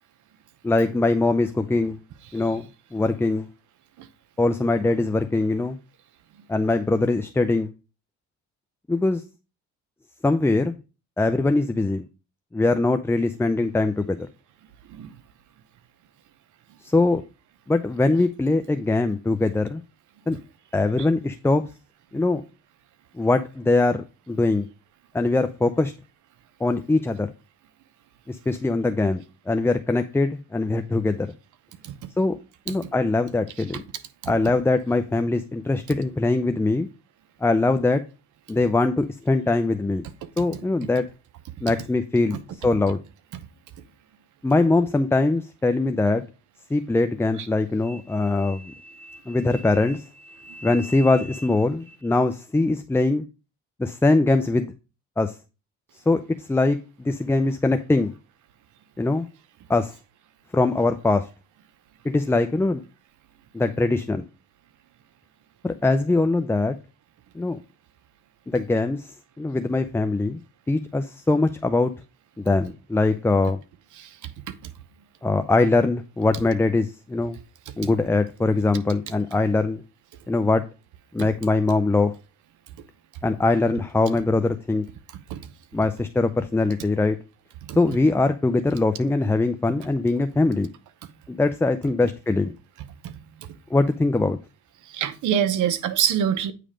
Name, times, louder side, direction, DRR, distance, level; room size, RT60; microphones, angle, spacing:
voice 1, 0.6-2.0 2.3-2.6 2.9-3.5 4.4-5.8 6.5-7.7 8.9-9.2 10.2-10.8 11.2-12.1 12.5-14.3 16.8-17.2 17.7-19.8 20.3-20.4 20.7-21.6 22.1-22.4 23.2-24.7 25.1-25.9 26.6-27.3 28.3-31.3 32.2-32.4 32.7-33.8 34.3-36.9 37.4-38.0 38.5-40.1 40.4-41.1 41.6-42.4 42.6-43.0 44.4-46.2 46.7-53.2 53.8-54.7 55.2-55.3 56.1-58.1 59.0-59.3 59.7-59.9 60.5-61.3 62.0-62.8 63.5-64.2 65.6-66.8 67.4-67.6 68.5-70.4 70.7-71.9 72.4-73.6 75.2-77.4 77.8-79.8 80.3-80.6 81.1-82.1 83.2-84.9 85.7-87.2 87.8-90.7 91.3-92.5 93.7-94.4, left 2 dB, 10° left, 0.4 m, -22 dB
voice 2, 94.9-96.5, right 9 dB, 75° right, 0.9 m, -26 dB
8.8 x 3.3 x 5.0 m
cardioid pair, 90°, 30 cm